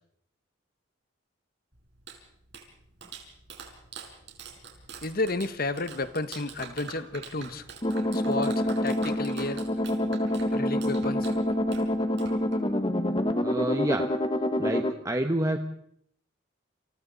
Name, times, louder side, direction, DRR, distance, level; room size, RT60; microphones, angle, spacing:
Clapping, 1.7-12.9, right 5 dB, 60° right, 5.6 m, -46 dB
voice 1, 5.0-7.6 8.1-9.9 10.5-11.3, left 2 dB, 50° left, 11 dB, 1.4 m, -32 dB
sound 1, 7.8-14.9, left 1 dB, 25° left, 1.3 m, -27 dB
voice 2, 13.4-14.1 14.6-15.6, right 1 dB, 15° right, 5 dB, 1.1 m, -28 dB
30.0 x 28.0 x 4.1 m, 0.69 s
head